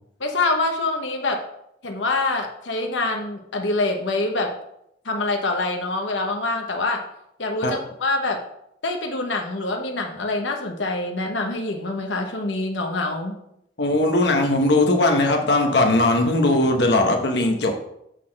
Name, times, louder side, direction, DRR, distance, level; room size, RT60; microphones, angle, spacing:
voice 1, 0.2-1.4 1.8-4.5 5.0-7.0 7.4-8.4 8.8-13.3, left 2 dB, 90° left, 3 dB, 0.9 m, -25 dB
voice 2, 13.8-17.8, left 2 dB, 65° left, 2 dB, 1.0 m, -19 dB
6.6 x 3.9 x 6.3 m, 0.78 s
head